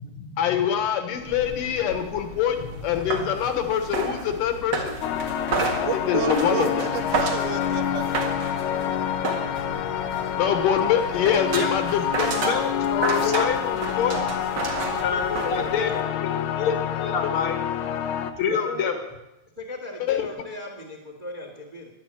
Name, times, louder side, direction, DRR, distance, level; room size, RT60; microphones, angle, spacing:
voice 1, 0.4-2.6 2.8-5.0 6.1-6.9 10.4-12.3 13.2-13.5 20.0-20.3, left 9 dB, 65° left, 7 dB, 2.8 m, -24 dB
sound 1, 1.1-16.0, right 3 dB, 40° right, 1.5 m, -32 dB
sound 2, 5.0-18.3, left 9 dB, 85° left, 3.0 m, -28 dB
voice 2, 5.6-8.1, right 7 dB, 75° right, 8 dB, 2.9 m, -30 dB
voice 3, 12.2-14.2 15.0-17.6 18.3-18.9, left 6 dB, 45° left, 6 dB, 1.9 m, -27 dB
voice 4, 14.1-14.4 14.8-16.0 18.5-19.0 19.6-21.9, left 2 dB, 20° right, 3 dB, 1.6 m, -36 dB
12.5 x 11.5 x 8.9 m, 0.92 s
omnidirectional pair, 4.4 m